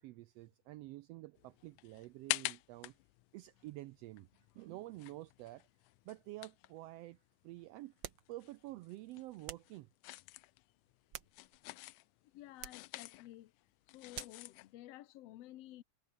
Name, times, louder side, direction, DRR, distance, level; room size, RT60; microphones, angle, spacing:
voice 1, 0.0-3.0 3.3-4.3 4.5-5.7 6.0-8.0 8.3-9.9, right 17 dB, 90° right, 1.4 m, -49 dB
sound 1, 1.4-7.7 8.0-14.7, left 20 dB, 90° left, 2.1 m, -47 dB
sound 2, 8.0-8.3 9.5-9.8 10.8-11.7 12.6-12.9 14.1-14.5, right 9 dB, 50° right, 1.5 m, -48 dB
voice 2, 12.3-13.5 13.9-15.8, left 15 dB, 65° left, 1.8 m, -53 dB
omnidirectional pair, 3.4 m